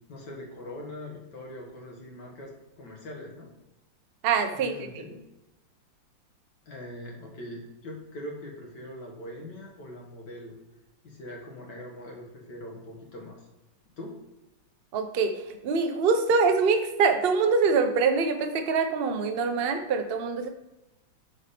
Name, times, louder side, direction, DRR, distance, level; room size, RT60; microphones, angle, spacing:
voice 1, 0.1-3.5 4.5-5.2 6.7-10.6 11.0-13.4 14.0-14.2, left 1 dB, 65° left, -1 dB, 2.1 m, -42 dB
voice 2, 4.2-4.9 14.9-20.5, right 4 dB, 60° right, 6 dB, 0.6 m, -24 dB
7.0 x 4.7 x 5.1 m, 0.96 s
omnidirectional pair, 2.1 m